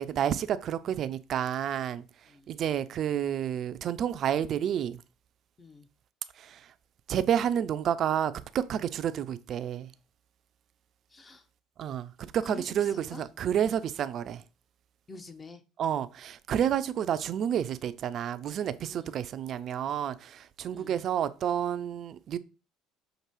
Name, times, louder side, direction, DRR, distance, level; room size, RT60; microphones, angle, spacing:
voice 1, 0.0-2.0 2.5-5.0 6.4-6.7 7.1-9.9 11.8-14.4 15.8-22.4, right 9 dB, 50° right, 0.3 m, -30 dB
voice 2, 11.1-11.5 12.4-13.2 15.1-15.6 18.9-19.2 20.7-21.0, left 3 dB, 25° left, 0.6 m, -46 dB
6.0 x 2.6 x 2.9 m
hypercardioid pair, 60°, 0 cm